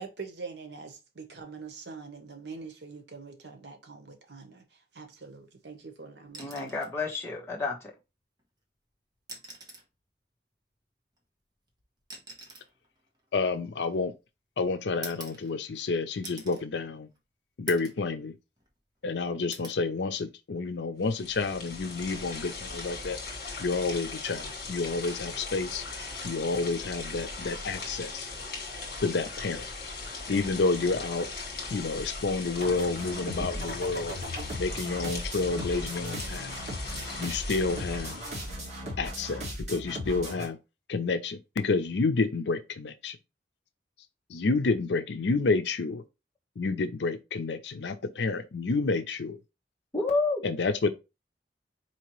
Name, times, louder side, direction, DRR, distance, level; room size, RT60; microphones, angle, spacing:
voice 1, 0.0-6.7, right 4 dB, 75° right, 0.9 m, -44 dB
sound 1, 6.3-7.0 8.4-8.5 9.2-10.0 11.1-14.2 15.0-15.9 16.2-16.7 17.1-17.2 17.7-18.1 18.5-19.1 19.5-19.8 21.3-21.5, right 2 dB, 25° right, 1.0 m, -46 dB
voice 2, 6.4-7.9 49.9-50.4, left 3 dB, 15° left, 1.1 m, -29 dB
voice 3, 13.3-14.1 14.6-17.1 17.6-18.3 19.0-23.2 23.6-25.8 26.2-28.3 29.0-29.7 30.3-31.3 31.7-34.1 34.6-36.5 37.2-38.2 39.0-40.6 40.9-43.2 44.3-46.0 46.6-49.4 50.4-50.9, left 3 dB, 80° left, 0.5 m, -29 dB
sound 2, 21.0-38.7, left 3 dB, 55° left, 1.5 m, -39 dB
sound 3, 32.5-40.5, equal, 40° right, 1.6 m, -37 dB
4.3 x 2.9 x 3.0 m
head